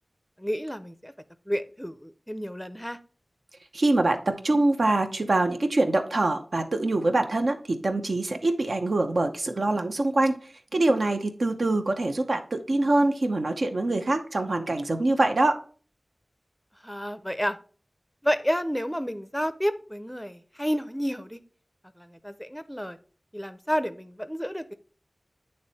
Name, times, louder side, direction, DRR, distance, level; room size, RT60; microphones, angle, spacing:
voice 1, 0.4-1.1 1.5-3.0 16.8-17.6 18.2-21.4 22.0-23.0 23.3-24.7, equal, 5° left, 12 dB, 0.5 m, -30 dB
voice 2, 3.7-10.4 10.7-15.6, right 2 dB, 75° right, 5 dB, 0.7 m, -24 dB
8.8 x 3.3 x 4.0 m, 0.42 s
wide cardioid pair, 50°, 0 cm